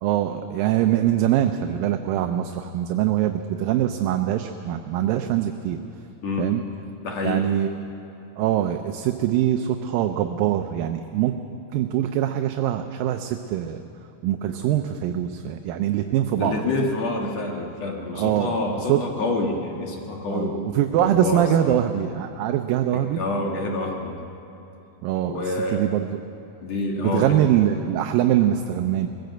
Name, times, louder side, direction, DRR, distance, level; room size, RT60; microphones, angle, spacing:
voice 1, 0.0-5.8 6.4-6.6 7.2-7.7 8.4-11.3 11.7-13.8 14.2-16.6 18.1-18.6 18.9-19.0 20.3-23.2 25.0-26.2 27.0-29.1, right 11 dB, 80° right, 6 dB, 2.2 m, -23 dB
voice 2, 6.2-6.6 7.0-7.5 16.3-21.8 22.9-24.2 25.2-25.9 26.6-27.4, left 2 dB, 50° left, 1 dB, 2.4 m, -27 dB
21.0 x 15.5 x 7.9 m, 2.8 s
omnidirectional pair, 4.4 m